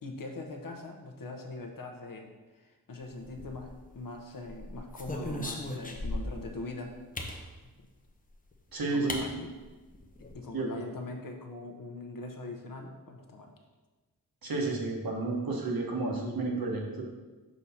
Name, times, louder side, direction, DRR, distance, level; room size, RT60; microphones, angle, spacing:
voice 1, 0.0-6.9 8.8-9.5 10.2-13.5, left 2 dB, 65° left, 3 dB, 0.8 m, -42 dB
sound 1, 3.2-3.9 4.5-6.5 7.1-7.4 8.5-8.6 9.1-9.2 9.6-9.7 9.9-10.3, left 1 dB, 25° left, 0.7 m, -37 dB
voice 2, 8.7-9.4 10.5-10.7 14.4-17.0, right 3 dB, 75° right, 0 dB, 1.1 m, -31 dB
6.3 x 2.7 x 5.5 m, 1.2 s
wide cardioid pair, 110°, 36 cm